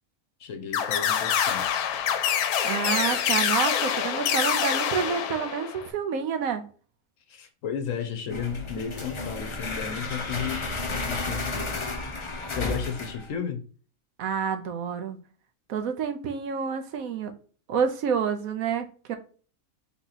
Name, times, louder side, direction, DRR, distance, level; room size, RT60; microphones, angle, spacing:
voice 1, 0.4-1.7 7.3-11.8 12.5-13.6, left 7 dB, 65° left, 1.0 m, -34 dB
sound 1, 0.7-5.9, left 9 dB, 90° left, 1.1 m, -26 dB
voice 2, 2.6-6.6 14.2-15.2 15.7-17.3 17.7-19.2, right 6 dB, 75° right, 1.1 m, -28 dB
sound 2, 8.3-13.3, left 2 dB, 50° left, 0.3 m, -32 dB
3.8 x 2.9 x 4.0 m
omnidirectional pair, 1.6 m